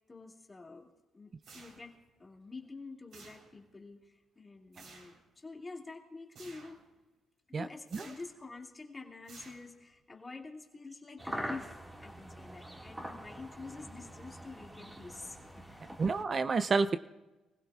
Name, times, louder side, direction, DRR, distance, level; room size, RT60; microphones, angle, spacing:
voice 1, 0.1-1.9 2.2-6.8 7.5-15.8, left 3 dB, 25° left, 0 dB, 2.2 m, -48 dB
sound 1, 1.4-2.1 3.1-3.8 4.7-5.2 6.4-6.9 7.9-8.4 9.3-9.9, right 4 dB, 70° right, 3.8 m, -54 dB
sound 2, 11.2-16.2, right 1 dB, 15° right, 1.9 m, -44 dB
voice 2, 16.0-17.0, right 4 dB, 40° right, 12 dB, 0.5 m, -29 dB
24.5 x 16.0 x 2.4 m, 1.1 s
cardioid pair, 90°, 0 cm